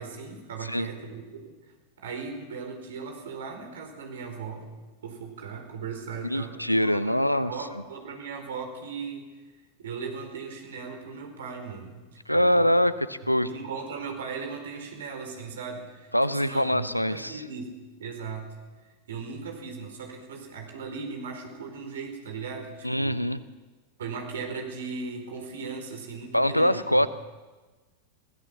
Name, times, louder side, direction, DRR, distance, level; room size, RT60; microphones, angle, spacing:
voice 1, 0.0-4.7 5.0-6.6 6.9-9.3 9.8-12.1 12.3-12.7 13.2-17.7 18.0-18.5 19.1-23.2 24.0-27.0, right 5 dB, 60° right, 4 dB, 4.6 m, -38 dB
voice 2, 6.2-7.5 12.3-13.5 16.1-17.4 22.8-23.4 26.3-27.1, equal, 90° left, 16 dB, 0.9 m, -24 dB
24.5 x 16.5 x 7.1 m, 1.3 s
figure-of-eight pair, 90°, 0 cm